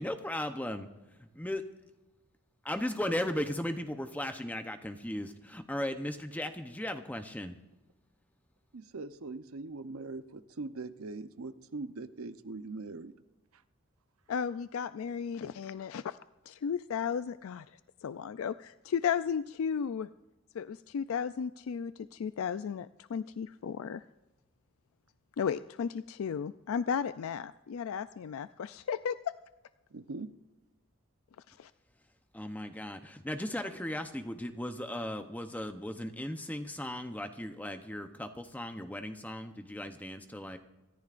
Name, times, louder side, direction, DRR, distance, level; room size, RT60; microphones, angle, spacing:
voice 1, 0.0-0.9 1.4-1.6 2.6-7.6 32.3-40.6, left 1 dB, 5° left, 7 dB, 0.7 m, -36 dB
voice 2, 8.7-13.1 29.9-30.3, right 3 dB, 80° right, 11 dB, 0.7 m, -41 dB
voice 3, 14.3-16.2 16.5-17.6 18.0-20.1 20.5-24.0 25.4-29.3 31.5-31.7, left 7 dB, 75° left, 14 dB, 0.4 m, -34 dB
26.0 x 14.5 x 2.5 m, 1.1 s
head